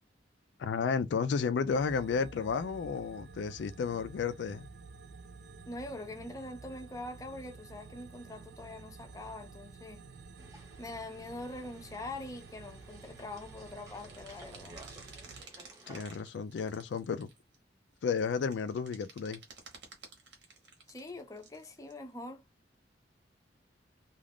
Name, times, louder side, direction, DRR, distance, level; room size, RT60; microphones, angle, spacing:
voice 1, 0.6-4.7 15.9-17.3 18.0-19.4, left 5 dB, 85° left, 0.3 m, -32 dB
sound 1, 1.7-15.4, right 4 dB, 70° right, 0.4 m, -51 dB
voice 2, 5.7-10.0 10.8-14.8 20.9-22.4, left 2 dB, 20° left, 0.5 m, -43 dB
sound 2, 10.4-16.2, right 1 dB, 20° right, 0.9 m, -55 dB
sound 3, 12.4-12.5 12.8-12.9 13.4-17.6 18.0-22.0, right 4 dB, 85° right, 1.0 m, -53 dB
2.4 x 2.3 x 3.4 m
head